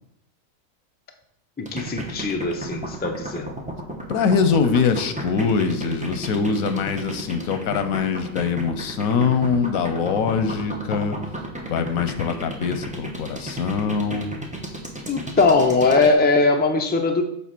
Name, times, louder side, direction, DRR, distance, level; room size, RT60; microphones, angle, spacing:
voice 1, 1.6-3.5 15.1-17.2, left 3 dB, 10° left, 4 dB, 0.4 m, -20 dB
sound 1, 1.7-16.1, right 1 dB, 5° right, 0.8 m, -33 dB
voice 2, 4.1-11.2 11.7-14.3, left 5 dB, 85° left, 9 dB, 1.2 m, -23 dB
7.4 x 3.8 x 5.9 m, 0.78 s
omnidirectional pair, 1.4 m